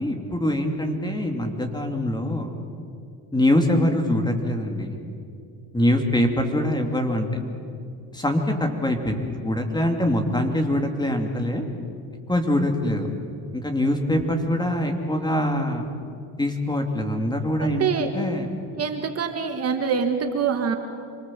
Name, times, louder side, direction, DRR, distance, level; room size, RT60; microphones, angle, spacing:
voice 1, 0.0-2.5 3.3-5.0 5.7-7.3 8.1-11.6 12.3-13.1 13.5-15.8 16.4-18.5, left 1 dB, 10° left, 4 dB, 2.6 m, -24 dB
voice 2, 17.6-18.1 18.8-20.8, right 6 dB, 35° right, 5 dB, 1.9 m, -25 dB
27.5 x 24.0 x 7.6 m, 2.5 s
cardioid pair, 140°, 44 cm